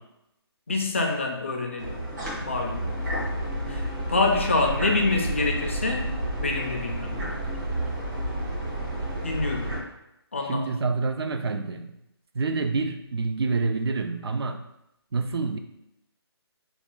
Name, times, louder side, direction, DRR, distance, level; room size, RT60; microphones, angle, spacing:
voice 1, 0.7-2.0 2.4-3.0 3.7-6.1 6.4-7.4 9.2-9.8 10.3-10.8, left 3 dB, 30° left, 2 dB, 0.3 m, -27 dB
sound 1, 1.8-9.8, right 1 dB, 45° right, 1.5 m, -30 dB
voice 2, 10.5-12.0 12.3-14.6 15.1-15.6, right 4 dB, 65° right, 7 dB, 0.4 m, -27 dB
3.1 x 2.3 x 3.7 m, 0.84 s
hypercardioid pair, 170°, 14 cm